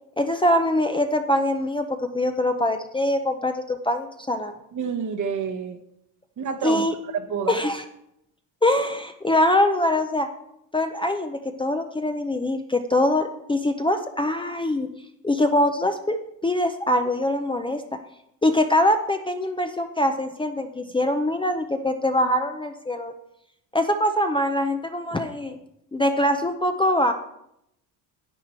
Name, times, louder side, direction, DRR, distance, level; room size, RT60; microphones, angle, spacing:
voice 1, 0.2-4.5 6.6-6.9 7.5-7.8 8.6-10.3 10.7-14.9 15.2-17.8 18.4-23.1 23.7-25.6 25.9-27.1, left 1 dB, 10° left, 6 dB, 0.6 m, -23 dB
voice 2, 4.7-5.8 6.4-7.6, right 6 dB, 45° right, 9 dB, 1.1 m, -29 dB
10.0 x 9.2 x 4.4 m, 0.79 s
cardioid pair, 115°, 42 cm